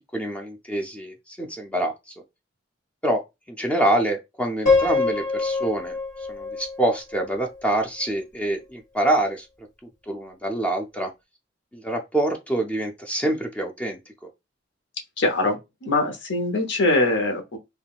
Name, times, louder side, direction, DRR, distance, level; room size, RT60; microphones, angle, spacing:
voice 1, 0.1-2.0 3.0-3.2 3.5-6.0 6.3-9.5 10.1-11.1 11.7-14.0, right 1 dB, 5° left, 0.4 m, -26 dB
Piano, 4.7-7.7, left 4 dB, 45° left, 1.6 m, -24 dB
voice 2, 15.2-17.6, left 2 dB, 65° left, 0.8 m, -23 dB
3.5 x 2.2 x 2.3 m
head